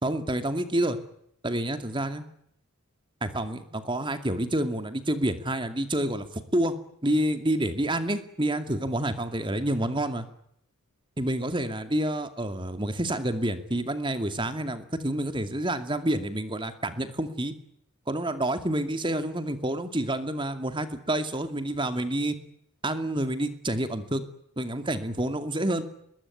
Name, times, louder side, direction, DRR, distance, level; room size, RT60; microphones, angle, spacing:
voice 1, 0.0-1.0 1.4-2.2 3.2-6.3 6.5-6.8 7.0-10.3 11.2-17.5 18.1-22.4 22.8-24.2 24.6-25.8, right 1 dB, 20° right, 9 dB, 2.4 m, -28 dB
22.5 x 21.0 x 9.9 m, 0.72 s
head